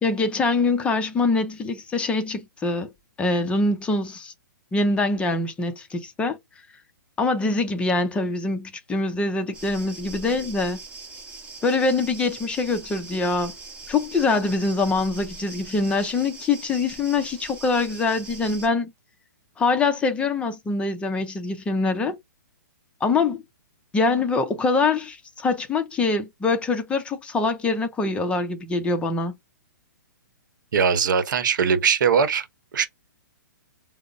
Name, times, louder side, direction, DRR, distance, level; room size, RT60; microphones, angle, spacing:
voice 1, 0.0-2.9 3.2-4.3 4.7-6.4 7.2-10.8 11.6-13.5 13.9-18.9 19.6-22.2 23.0-23.4 23.9-29.3, left 3 dB, 10° left, 0.5 m, -24 dB
sound 1, 9.5-18.7, right 3 dB, 10° right, 1.0 m, -41 dB
voice 2, 30.7-32.5 32.7-32.9, right 6 dB, 70° right, 0.8 m, -20 dB
4.8 x 2.0 x 2.5 m
hypercardioid pair, 140°, 11 cm